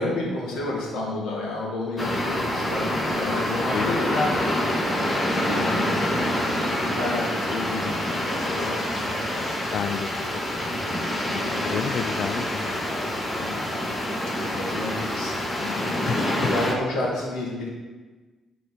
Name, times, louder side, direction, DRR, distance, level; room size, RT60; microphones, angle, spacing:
voice 1, 0.0-4.4 5.2-9.7 10.2-10.3 11.4-11.9 13.4-13.6 14.5-17.7, left 2 dB, 85° left, -4 dB, 2.0 m, -31 dB
sound 1, 2.0-16.7, left 1 dB, 25° left, 1.8 m, -26 dB
voice 2, 9.7-10.1 11.2-12.8 16.1-16.6, left 8 dB, 65° left, 14 dB, 0.3 m, -31 dB
9.7 x 4.2 x 6.0 m, 1.3 s
cardioid pair, 90°, 0 cm